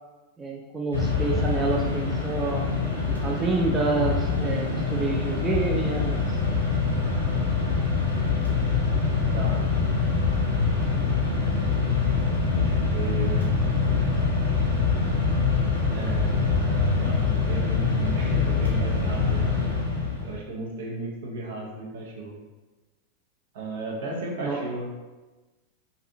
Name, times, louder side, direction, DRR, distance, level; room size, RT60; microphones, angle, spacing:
voice 1, 0.4-2.6 3.1-6.4 24.4-24.6, right 3 dB, 15° right, -1 dB, 0.4 m, -28 dB
Mechanisms, 0.9-20.4, left 4 dB, 80° left, 0.8 m, -24 dB
voice 2, 12.5-13.4 15.9-19.4 20.2-22.4 23.5-24.9, right 3 dB, 55° right, -2 dB, 0.7 m, -35 dB
3.2 x 2.6 x 2.6 m, 1.2 s
figure-of-eight pair, 90°, 0 cm